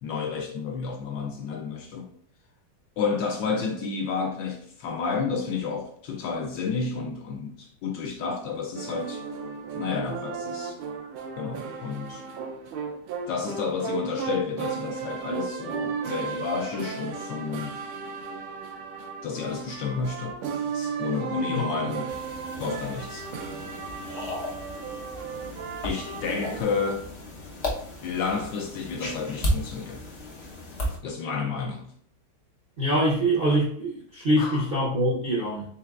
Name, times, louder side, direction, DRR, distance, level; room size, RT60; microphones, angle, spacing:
voice 1, 0.0-2.1 3.0-9.2 9.7-10.8 11.4-12.2 13.3-17.8 19.2-20.4 20.7-22.2 22.6-23.3 25.8-27.1 28.0-30.0 31.0-31.9 34.4-34.7, left 5 dB, 75° left, 1.1 m, -31 dB
sound 1, 8.8-26.6, right 6 dB, 85° right, 1.5 m, -35 dB
sound 2, 22.1-31.0, left 1 dB, 60° left, 0.6 m, -34 dB
voice 2, 32.8-35.7, right 1 dB, 45° right, 0.7 m, -24 dB
4.4 x 3.8 x 2.4 m
omnidirectional pair, 2.3 m